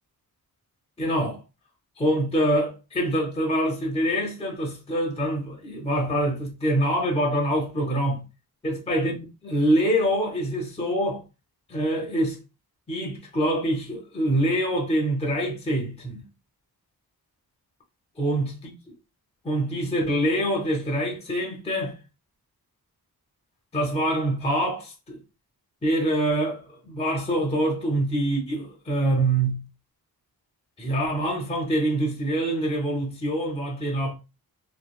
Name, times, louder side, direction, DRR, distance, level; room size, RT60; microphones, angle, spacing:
voice 1, 1.0-1.4 2.0-8.2 8.6-9.2 9.4-11.2 11.7-12.4 12.9-16.2 18.2-18.5 19.4-22.0 23.7-25.2 25.8-29.6 30.8-34.1, right 1 dB, 15° left, 0.6 m, -25 dB
3.0 x 2.4 x 2.3 m
wide cardioid pair, 155°, 38 cm